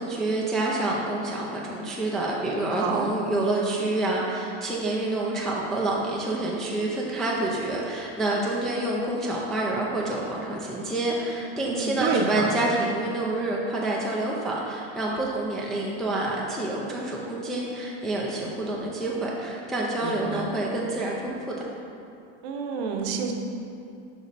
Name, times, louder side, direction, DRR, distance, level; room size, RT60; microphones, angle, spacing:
voice 1, 0.0-21.5, right 2 dB, ahead, -4 dB, 0.3 m, -28 dB
voice 2, 2.7-3.1 11.7-12.6 20.0-20.5 22.4-23.3, right 5 dB, 60° right, 3 dB, 0.8 m, -28 dB
6.5 x 5.1 x 3.3 m, 2.5 s
supercardioid pair, 145°, 34 cm